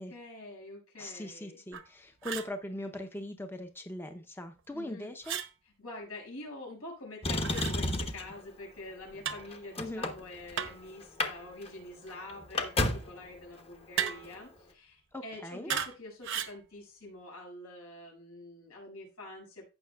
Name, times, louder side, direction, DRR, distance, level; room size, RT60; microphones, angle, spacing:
voice 1, 0.0-1.6 4.7-5.1 5.8-19.6, left 2 dB, 90° left, -1 dB, 5.7 m, -46 dB
voice 2, 1.0-5.4 9.8-10.1 15.1-15.7, left 1 dB, 10° left, 6 dB, 0.6 m, -40 dB
sound 1, 1.7-1.9 2.2-2.5 5.2-5.5 7.4-7.8 9.2-9.5 10.6-10.9 14.0-14.4 15.7-16.0 16.2-16.6, right 8 dB, 60° right, 0.8 m, -35 dB
Motor vehicle (road), 7.2-8.4 9.1-10.7 11.0-11.3 11.6-11.7 12.1-13.2 14.2-14.3, left 1 dB, 25° left, 0.9 m, -31 dB
16.0 x 5.8 x 2.3 m, 0.32 s
head